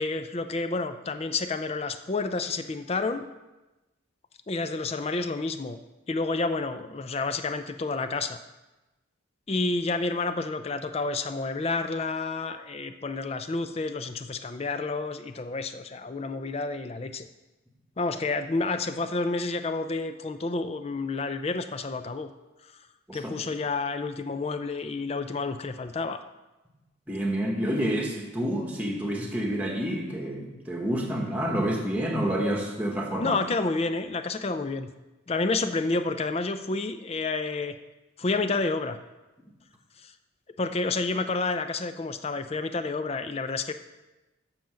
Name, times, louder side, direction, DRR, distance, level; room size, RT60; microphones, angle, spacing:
voice 1, 0.0-3.3 4.5-5.8 6.1-8.4 9.5-17.3 18.0-22.3 23.1-26.2 33.2-34.9 35.3-37.8 38.2-39.0 40.0-40.1 40.6-43.7, left 3 dB, 30° left, 9 dB, 0.4 m, -29 dB
voice 2, 27.1-33.4, equal, 5° right, 0 dB, 1.2 m, -28 dB
7.8 x 5.7 x 7.6 m, 1.1 s
head